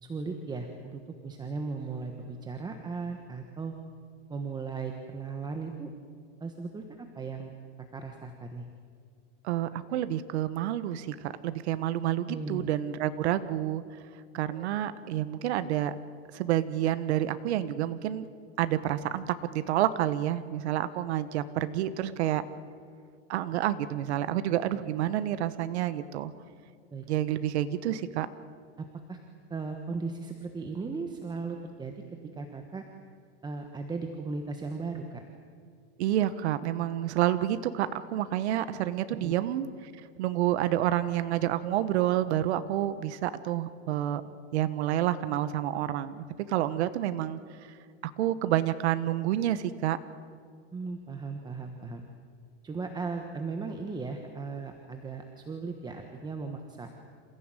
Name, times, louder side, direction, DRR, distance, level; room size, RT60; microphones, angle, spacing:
voice 1, 0.0-3.7 4.3-5.9 6.4-7.5 7.9-8.7 12.3-12.7 14.5-14.7 26.9-27.1 28.8-29.2 29.5-32.8 33.4-35.2 39.1-39.3 50.7-52.0 52.6-56.9, right 4 dB, 10° right, 4 dB, 1.3 m, -37 dB
voice 2, 9.4-13.8 14.3-15.9 16.3-18.3 18.6-22.4 23.3-26.3 27.1-28.3 36.0-39.7 40.2-47.4 48.0-50.0, right 12 dB, 75° right, 13 dB, 1.3 m, -29 dB
28.0 x 16.0 x 9.1 m, 2.2 s
supercardioid pair, 155°, 33 cm